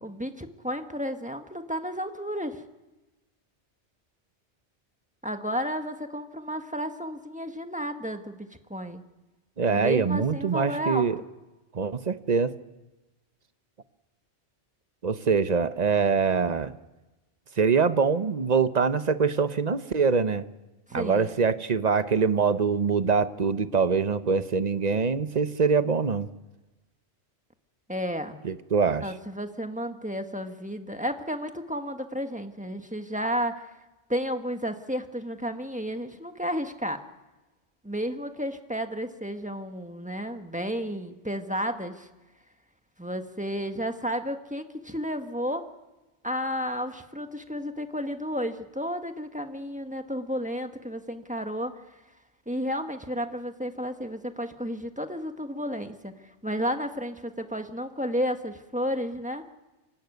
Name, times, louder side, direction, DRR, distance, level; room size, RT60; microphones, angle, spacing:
voice 1, 0.0-2.6 5.2-9.0 9.7-11.1 20.9-21.3 27.9-28.4 29.0-33.7 34.1-37.0 37.8-42.1 43.0-45.7 46.2-51.7 52.5-56.1 56.4-59.4, equal, 5° right, 6 dB, 1.4 m, -32 dB
voice 2, 9.6-11.2 11.7-12.5 15.0-16.7 17.6-20.4 20.9-26.3 28.4-29.1, right 5 dB, 40° right, 12 dB, 0.9 m, -24 dB
25.5 x 17.5 x 9.4 m, 1.1 s
omnidirectional pair, 1.2 m